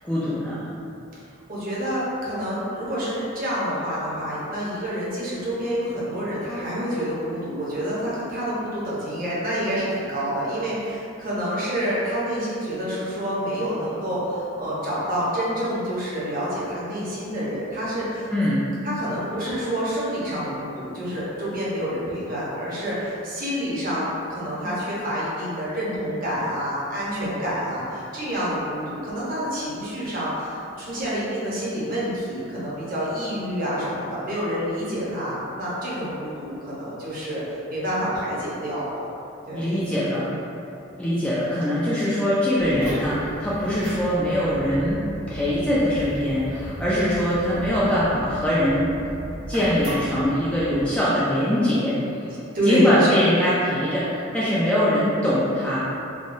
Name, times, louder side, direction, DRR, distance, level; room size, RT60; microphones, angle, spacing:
voice 1, 0.1-0.7 18.3-18.6 39.5-40.3 41.0-48.9 49.5-52.3 52.7-55.8, equal, 5° left, -9 dB, 0.3 m, -22 dB
voice 2, 1.5-18.3 18.8-39.0 39.5-39.7 52.5-53.1, equal, 40° right, -8 dB, 0.7 m, -28 dB
sound 1, 42.6-50.9, equal, 80° right, 0.8 m, -36 dB
3.5 x 2.2 x 2.5 m, 2.7 s
head